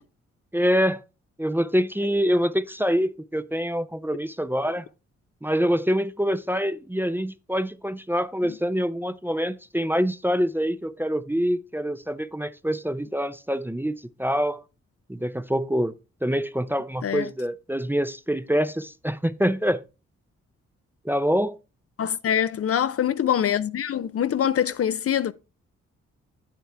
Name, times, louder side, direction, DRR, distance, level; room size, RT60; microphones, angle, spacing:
voice 1, 0.5-1.0 1.4-4.9 5.4-14.6 15.1-15.9 16.2-19.8 21.0-21.6, equal, 5° right, 0.5 m, -25 dB
voice 2, 22.0-25.3, left 9 dB, 50° left, 0.5 m, -24 dB
8.4 x 7.5 x 3.4 m
supercardioid pair, 50°, 29 cm